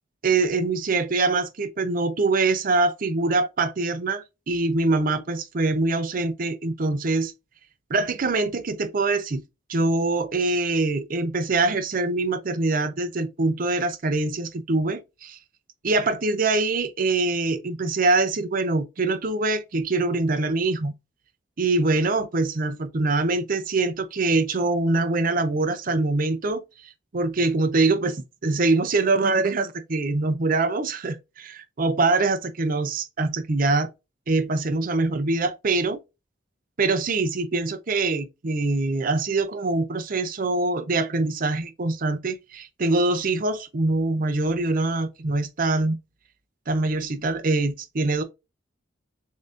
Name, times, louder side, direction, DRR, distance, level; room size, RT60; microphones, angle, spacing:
voice 1, 0.2-7.3 7.9-9.4 9.7-15.4 15.8-20.9 21.6-26.6 27.1-33.9 34.3-36.0 36.8-46.0 46.7-48.2, right 3 dB, 45° right, 0.6 m, -24 dB
6.8 x 2.7 x 2.5 m
head